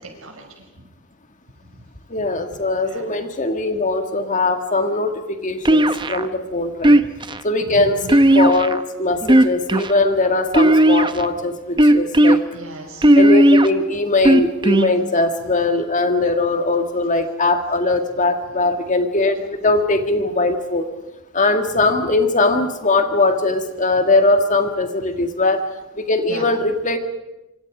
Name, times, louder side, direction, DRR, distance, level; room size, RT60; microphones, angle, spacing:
voice 1, 0.2-0.7 1.6-1.8 2.3-2.4 2.8-3.1 6.8-7.0 7.6-8.1 12.5-13.1 21.8-21.9 26.3-26.5, right 1 dB, 75° right, 3 dB, 5.9 m, -37 dB
voice 2, 2.1-6.9 7.4-12.4 13.2-20.9 21.3-25.6 26.0-27.0, left 2 dB, 35° left, 7 dB, 1.9 m, -20 dB
sound 1, 5.7-6.3 6.8-7.4 8.1-8.8 9.2-9.9 10.5-11.2 11.8-12.4 13.0-13.7 14.2-14.9, right 1 dB, 20° right, 0.8 m, -13 dB
26.0 x 25.5 x 5.1 m, 0.94 s
head